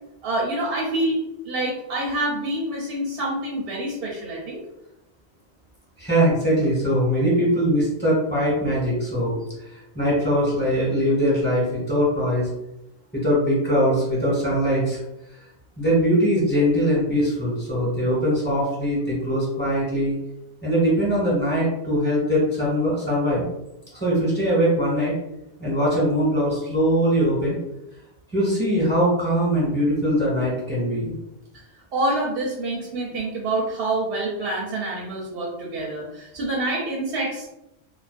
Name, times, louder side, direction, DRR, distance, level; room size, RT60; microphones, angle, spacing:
voice 1, 0.2-4.6 31.9-37.5, right 1 dB, 65° right, -4 dB, 0.7 m, -27 dB
voice 2, 6.0-9.4 9.9-12.5 13.1-15.0 15.8-20.1 20.6-23.4 24.0-25.2 25.6-27.6 28.3-31.2, equal, 10° left, -7 dB, 1.2 m, -21 dB
2.4 x 2.2 x 2.4 m, 0.88 s
omnidirectional pair, 1.2 m